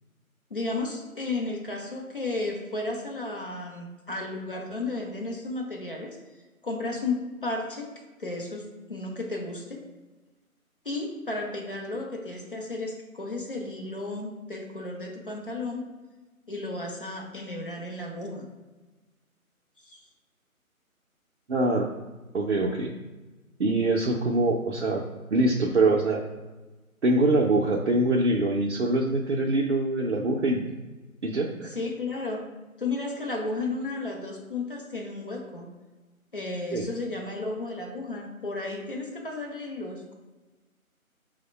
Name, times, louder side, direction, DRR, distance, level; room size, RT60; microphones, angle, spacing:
voice 1, 0.5-6.2 6.6-7.9 8.2-9.8 10.8-15.8 16.5-18.5 19.8-20.0 31.7-32.4 32.8-35.7 36.3-40.1, left 2 dB, 40° left, 0 dB, 0.5 m, -33 dB
voice 2, 21.5-21.9 22.3-22.9 23.6-25.0 25.3-26.2 27.0-30.7 31.2-31.8 36.7-36.9, right 2 dB, 55° right, -2 dB, 0.4 m, -24 dB
4.7 x 2.1 x 4.3 m, 1.2 s
figure-of-eight pair, 155°, 43 cm